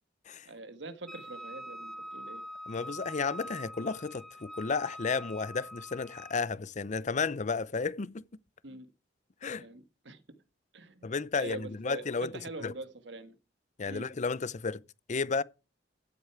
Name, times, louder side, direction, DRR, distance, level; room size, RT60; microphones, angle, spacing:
voice 1, 0.4-2.4 8.6-8.9 9.6-10.2 10.7-13.3 13.9-14.1, right 2 dB, 70° right, 1.5 m, -44 dB
Wind instrument woodwind instrument, 1.1-6.4, equal, ahead, 0.8 m, -44 dB
voice 2, 2.7-8.2 9.4-9.7 11.0-12.3 12.6-12.7 13.8-14.8 15.1-15.4, left 4 dB, 40° left, 0.6 m, -32 dB
15.5 x 8.1 x 4.7 m
head